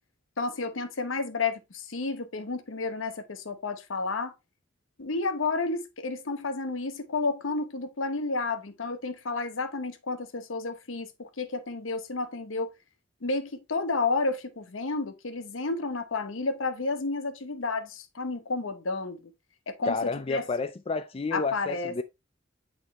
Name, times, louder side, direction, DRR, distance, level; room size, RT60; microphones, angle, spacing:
voice 1, 0.4-4.3 5.0-12.7 13.2-19.2 19.7-20.5 21.3-21.9, left 3 dB, 85° left, 0.9 m, -31 dB
voice 2, 19.8-22.0, left 3 dB, 30° left, 0.3 m, -30 dB
8.5 x 3.8 x 3.0 m
head